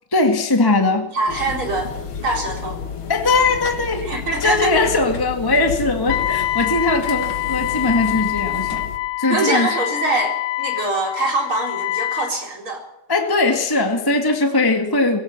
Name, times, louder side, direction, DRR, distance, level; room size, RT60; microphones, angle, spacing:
voice 1, 0.1-1.1 3.1-4.1 4.4-8.9 9.2-9.7 13.1-15.2, left 3 dB, 10° left, 3 dB, 1.6 m, -19 dB
voice 2, 1.1-1.9 2.2-2.8 4.0-4.7 9.3-12.8, right 2 dB, 40° right, 1 dB, 4.9 m, -23 dB
sound 1, 1.3-9.0, left 6 dB, 50° left, 2.2 m, -31 dB
Wind instrument woodwind instrument, 6.1-12.3, left 15 dB, 75° left, 2.3 m, -25 dB
22.0 x 16.5 x 7.4 m, 0.88 s
omnidirectional pair, 3.4 m